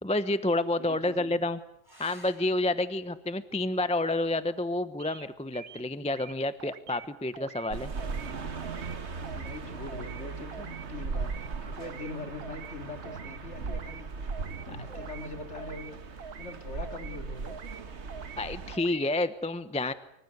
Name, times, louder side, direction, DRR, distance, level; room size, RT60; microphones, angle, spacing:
voice 1, 0.0-1.6 2.0-7.9 14.9-15.0 18.4-19.9, left 2 dB, 5° left, 12 dB, 0.7 m, -29 dB
voice 2, 0.8-1.3 9.3-14.3 14.6-15.9 16.2-17.6, left 3 dB, 45° left, 6 dB, 3.0 m, -42 dB
sound 1, 1.8-6.9 8.7-9.4 12.8-12.9 13.3-13.4, equal, 15° right, 8.0 m, -60 dB
sound 2, 5.0-5.3 5.5-6.3 6.6-7.1 7.3-7.7 8.0-8.3 8.6-9.0 9.2-9.6 9.9-10.2 10.5-10.8 11.1-11.5 11.8-12.1 12.4-12.7 13.0-13.4 13.7-14.0 14.3-14.6 14.9-15.3 15.5-15.9 16.2-16.5 16.8-17.2 17.4-17.8 18.1-18.4 18.7-19.1, right 7 dB, 75° right, 1.7 m, -45 dB
sound 3, 7.7-18.8, right 4 dB, 45° right, 1.6 m, -38 dB
25.0 x 25.0 x 8.1 m, 0.76 s
omnidirectional pair, 1.7 m